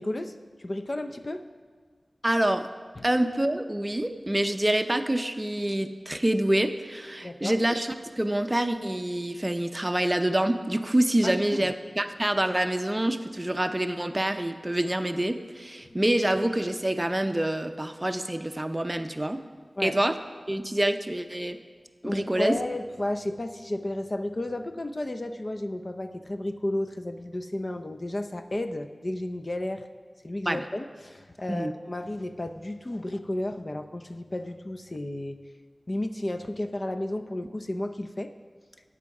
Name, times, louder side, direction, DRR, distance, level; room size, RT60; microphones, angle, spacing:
voice 1, 0.0-1.4 3.0-3.1 7.2-7.6 11.2-11.7 15.8-16.0 19.8-20.0 22.0-29.9 30.2-35.4 35.9-38.3, left 1 dB, 45° left, 8 dB, 0.6 m, -33 dB
voice 2, 2.2-2.7 3.0-19.4 19.8-20.2 20.5-21.6 22.0-22.6 30.5-30.6 31.5-31.7, right 1 dB, 25° right, 8 dB, 0.6 m, -26 dB
13.0 x 8.4 x 4.8 m, 1.5 s
wide cardioid pair, 70°, 0 cm